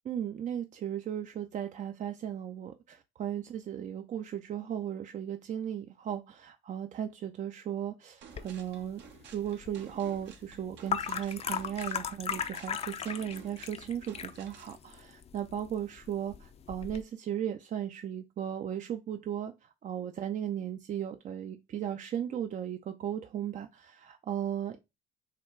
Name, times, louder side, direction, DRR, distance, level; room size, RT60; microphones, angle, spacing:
voice 1, 0.1-9.0 9.3-24.8, right 10 dB, 40° right, 0.5 m, -36 dB
sound 1, 8.2-14.8, right 8 dB, 65° right, 0.9 m, -53 dB
sound 2, 8.3-17.0, left 8 dB, 30° left, 0.5 m, -39 dB
6.6 x 2.4 x 3.1 m
supercardioid pair, 75°, 20 cm